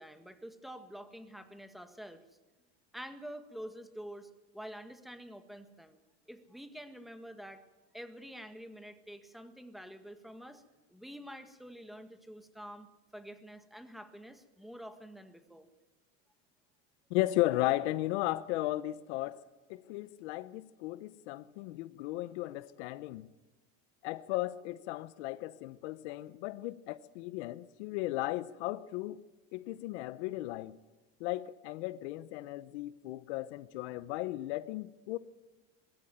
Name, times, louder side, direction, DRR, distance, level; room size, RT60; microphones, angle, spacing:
voice 1, 0.0-2.2 2.9-6.0 6.3-7.6 7.9-10.6 10.9-15.7, equal, ahead, 1.7 m, -47 dB
voice 2, 17.1-19.4 19.7-23.3 24.0-29.2 29.5-30.8 31.2-35.2, left 17 dB, 75° left, 0.9 m, -35 dB
21.5 x 13.5 x 9.3 m
supercardioid pair, 125°, 35 cm